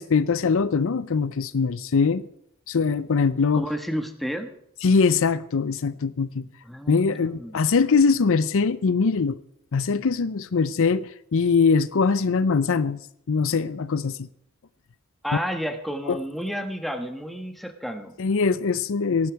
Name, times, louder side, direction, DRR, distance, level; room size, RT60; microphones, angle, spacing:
voice 1, 0.0-2.2 2.7-3.6 4.8-6.5 6.9-9.4 9.7-13.0 13.3-14.3 16.1-16.2 18.2-19.3, left 5 dB, 65° left, 0.5 m, -22 dB
voice 2, 3.5-4.5 6.6-7.6 15.2-18.1, equal, ahead, 1.4 m, -31 dB
18.0 x 11.5 x 4.7 m
head